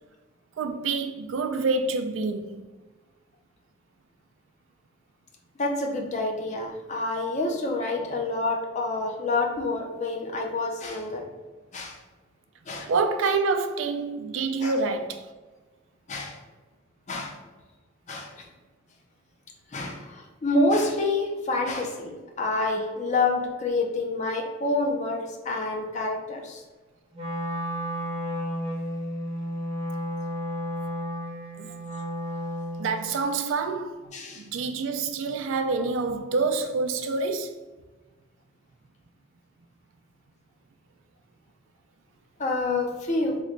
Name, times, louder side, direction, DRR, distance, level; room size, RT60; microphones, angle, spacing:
voice 1, 0.6-2.6 12.9-15.3 31.5-31.7 32.8-34.0 34.4-37.6, right 4 dB, 80° right, 0.4 m, -27 dB
voice 2, 5.6-11.2 11.7-12.0 12.7-12.9 14.6-14.7 16.1-16.4 17.1-17.4 18.1-18.3 19.7-26.6 34.1-34.4 42.4-43.4, left 2 dB, 40° left, 0.5 m, -27 dB
Wind instrument woodwind instrument, 27.1-33.1, equal, 30° right, 0.7 m, -32 dB
3.0 x 2.2 x 3.7 m
head